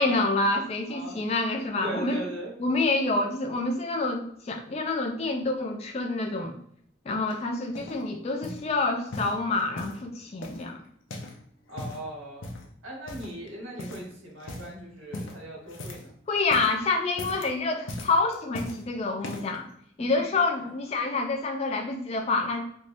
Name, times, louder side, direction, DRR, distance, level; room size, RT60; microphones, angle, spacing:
voice 1, 0.0-2.2 2.6-6.5 7.1-10.8 16.3-19.6 20.0-22.7, left 3 dB, 30° left, 3 dB, 0.3 m, -27 dB
voice 2, 0.9-1.2 1.8-2.6 11.7-12.5 12.8-16.1 20.1-20.2 20.5-20.7, right 1 dB, 85° right, -4 dB, 1.1 m, -39 dB
sound 1, 7.3-8.0 8.4-8.7 9.1-10.0 10.4-11.4 11.7-12.1 12.4-12.7 13.1-13.5 13.8-14.1 14.4-14.7 15.1-16.1 16.4-16.8 17.1-17.5 17.9-18.8 19.2-19.6 20.2-20.3, left 1 dB, 75° left, 0.6 m, -39 dB
3.3 x 2.6 x 2.6 m, 0.66 s
head